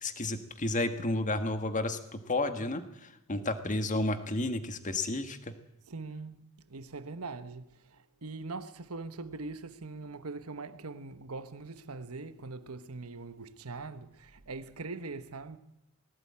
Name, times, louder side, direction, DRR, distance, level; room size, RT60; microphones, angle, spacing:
voice 1, 0.0-5.5, left 2 dB, 35° left, 1.6 m, -32 dB
voice 2, 5.9-6.4 6.7-15.6, right 3 dB, 75° right, 1.2 m, -42 dB
19.0 x 16.0 x 8.7 m
head